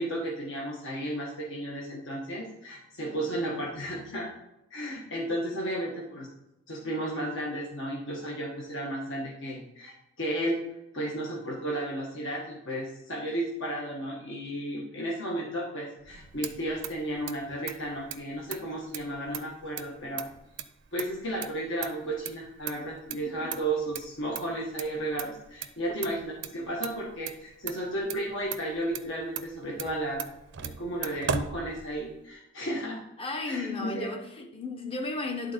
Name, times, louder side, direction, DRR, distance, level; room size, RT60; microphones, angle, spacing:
voice 1, 0.0-4.3 4.7-6.3 6.7-10.6 10.9-20.3 20.9-30.3 30.6-33.0 33.4-34.1, right 1 dB, 60° left, 1.5 m, -33 dB
Motor vehicle (road), 16.0-32.3, right 7 dB, 55° right, 0.5 m, -40 dB
voice 2, 23.1-23.5 33.2-35.5, left 3 dB, 25° left, 0.9 m, -34 dB
11.0 x 4.1 x 5.2 m
head